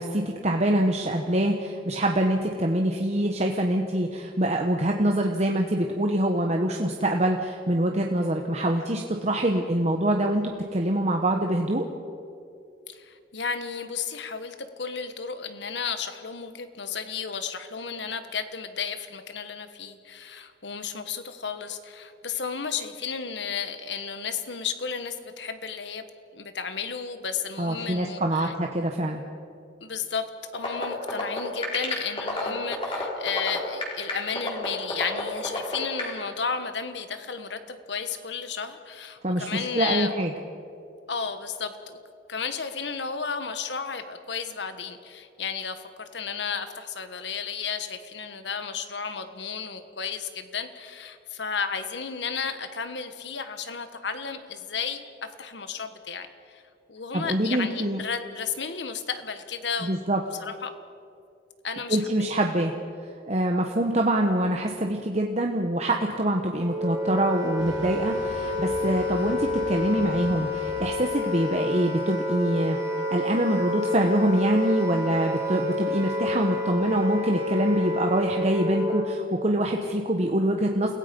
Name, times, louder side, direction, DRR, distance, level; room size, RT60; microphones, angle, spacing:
voice 1, 0.0-11.8 27.6-29.2 39.2-40.3 57.1-58.0 59.8-60.2 61.9-62.7 63.3-72.8 73.1-80.9, right 1 dB, 35° right, 2 dB, 1.1 m, -25 dB
voice 2, 12.9-26.0 26.3-28.5 29.8-40.1 41.1-42.0 42.3-56.6 56.9-60.0 60.4-60.7 61.6-62.0, left 6 dB, 70° left, 9 dB, 1.4 m, -33 dB
sound 1, 30.5-36.1, left 2 dB, 30° left, 4.4 m, -29 dB
Wind instrument woodwind instrument, 66.5-79.2, left 1 dB, 15° right, 3.1 m, -29 dB
sound 2, 67.6-71.0, equal, 75° right, 2.8 m, -42 dB
28.5 x 17.0 x 5.3 m, 2.6 s
head